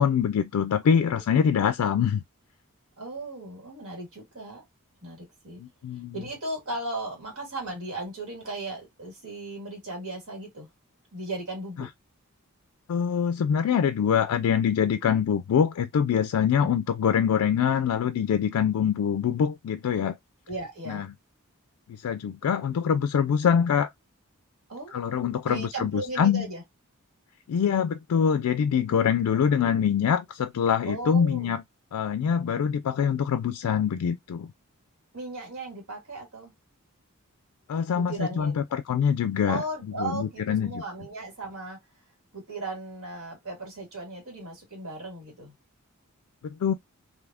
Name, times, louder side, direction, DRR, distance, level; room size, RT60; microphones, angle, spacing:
voice 1, 0.0-2.2 5.6-6.2 12.9-20.2 20.9-21.1 21.9-23.9 24.9-26.5 27.5-31.6 31.9-34.5 37.7-39.6 40.0-40.8 46.4-46.7, left 7 dB, 85° left, 0.3 m, -24 dB
voice 2, 3.0-4.6 5.0-5.6 6.1-10.7 11.1-11.9 16.6-16.7 20.5-21.0 24.7-24.9 25.4-26.6 29.3-29.8 30.8-31.6 35.1-36.5 37.9-38.6 39.5-41.8 42.3-45.5, right 2 dB, 70° right, 1.9 m, -36 dB
3.4 x 2.7 x 2.2 m
head